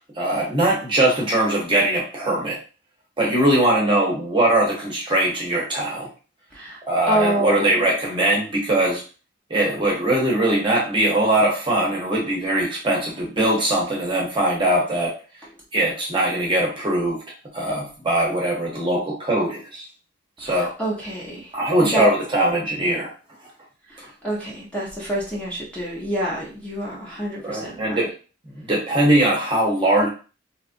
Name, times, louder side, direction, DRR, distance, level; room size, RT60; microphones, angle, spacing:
voice 1, 0.2-2.6 3.2-6.1 6.9-9.0 9.5-15.1 15.7-17.2 17.5-19.8 20.4-20.7 21.5-23.1 27.4-28.1 28.6-30.1, right 1 dB, 25° right, -3 dB, 0.7 m, -21 dB
voice 2, 7.1-7.9 20.4-21.5 21.8-22.1 23.9-28.1, right 1 dB, 5° left, -5 dB, 0.8 m, -27 dB
2.8 x 2.4 x 2.5 m, 0.35 s
head